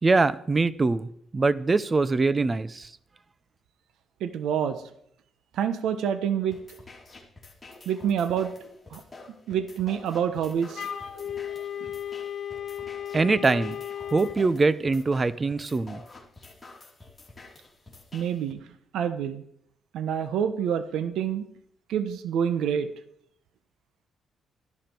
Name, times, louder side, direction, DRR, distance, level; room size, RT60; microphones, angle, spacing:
voice 1, 0.0-2.9 13.1-13.8 14.1-16.0, right 3 dB, 30° right, 17 dB, 0.7 m, -23 dB
voice 2, 4.2-4.8 5.5-6.6 7.9-8.5 8.9-9.0 9.5-11.2 18.1-18.6 18.9-19.4 19.9-21.5 21.9-22.9, right 8 dB, 80° right, 11 dB, 1.0 m, -27 dB
sound 1, 6.5-18.5, left 3 dB, 20° left, 3.7 m, -48 dB
Wind instrument woodwind instrument, 10.7-14.4, left 9 dB, 55° left, 1.8 m, -35 dB
13.5 x 11.5 x 4.6 m, 0.69 s
cardioid pair, 90°, 0 cm